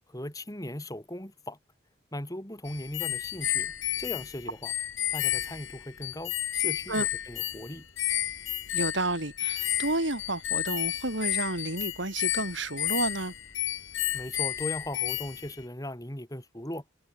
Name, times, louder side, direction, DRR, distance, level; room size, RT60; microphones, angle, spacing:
voice 1, 0.1-1.6 2.1-4.7 5.1-7.9 14.1-16.8, left 1 dB, 15° left, 3.5 m, -38 dB
sound 1, 2.7-15.6, left 13 dB, 75° left, 3.1 m, -32 dB
voice 2, 8.7-13.3, right 2 dB, 70° right, 4.1 m, -31 dB
head